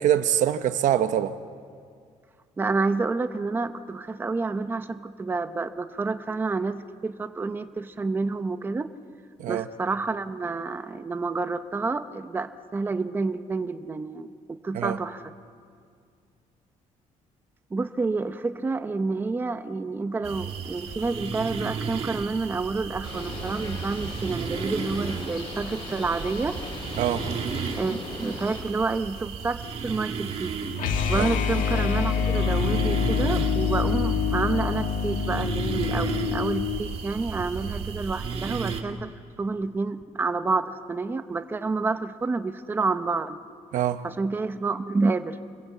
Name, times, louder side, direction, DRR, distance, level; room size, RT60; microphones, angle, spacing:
voice 1, 0.0-1.4 9.4-9.7 14.7-15.0 27.0-27.3 31.2-31.4 43.7-44.0, right 11 dB, 75° right, 1.1 m, -24 dB
voice 2, 2.6-8.9 9.5-15.2 17.7-26.6 27.8-30.5 31.1-39.1 39.4-43.4 44.0-45.4, right 3 dB, 15° right, 0.8 m, -29 dB
sound 1, 20.2-38.8, right 6 dB, 50° right, 2.1 m, -34 dB
Bird, 23.0-28.6, left 2 dB, 45° left, 6.6 m, -38 dB
sound 2, 30.8-36.9, left 6 dB, 90° left, 1.7 m, -26 dB
28.0 x 22.0 x 8.3 m
cardioid pair, 180°, 13 cm